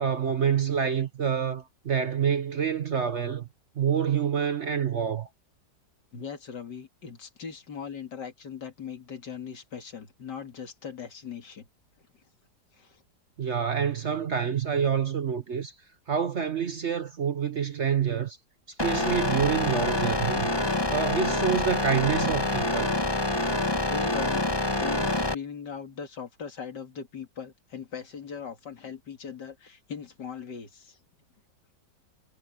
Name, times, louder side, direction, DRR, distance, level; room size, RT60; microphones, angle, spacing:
voice 1, 0.0-3.5 3.8-5.3 13.4-15.7 16.1-18.4 18.8-20.5 20.9-23.0, right 7 dB, 50° right, 1.0 m, -27 dB
voice 2, 6.1-11.7 12.7-13.0 23.9-31.0, left 6 dB, 75° left, 2.8 m, -39 dB
sound 1, 18.8-25.3, left 2 dB, 15° left, 1.8 m, -26 dB
omnidirectional pair, 1.9 m